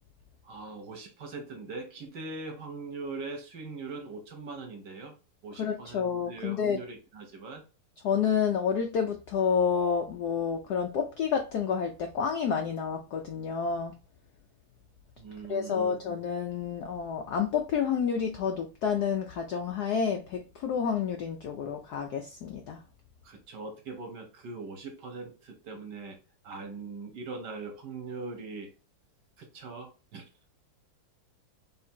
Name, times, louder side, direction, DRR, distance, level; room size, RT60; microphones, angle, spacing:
voice 1, 0.4-5.1 5.4-7.6 15.2-15.9 23.2-26.2 26.4-28.7 29.4-30.3, right 3 dB, 60° right, 1.3 m, -41 dB
voice 2, 5.6-6.8 8.0-13.9 15.5-22.8, left 6 dB, 90° left, 0.8 m, -29 dB
3.8 x 2.6 x 4.4 m
omnidirectional pair, 2.4 m